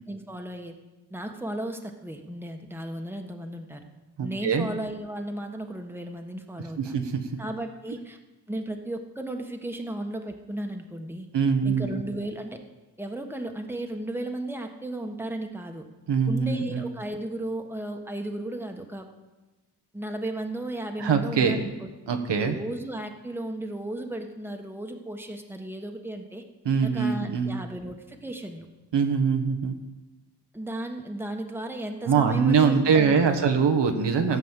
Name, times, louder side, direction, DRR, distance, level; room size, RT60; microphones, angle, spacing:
voice 1, 0.1-0.7 1.1-3.8 4.2-7.0 7.4-8.2 8.5-11.3 11.6-12.6 13.0-15.9 16.3-19.1 19.9-21.7 22.4-26.4 26.8-28.7 30.5-33.5, right 1 dB, 5° right, 4 dB, 1.4 m, -35 dB
voice 2, 4.2-4.7 6.8-7.4 11.3-12.0 16.1-16.8 21.0-21.7 22.1-22.6 26.6-27.6 28.9-29.8 32.0-34.4, right 6 dB, 80° right, 5 dB, 1.4 m, -23 dB
15.5 x 5.5 x 8.2 m, 1.2 s
cardioid pair, 75°, 42 cm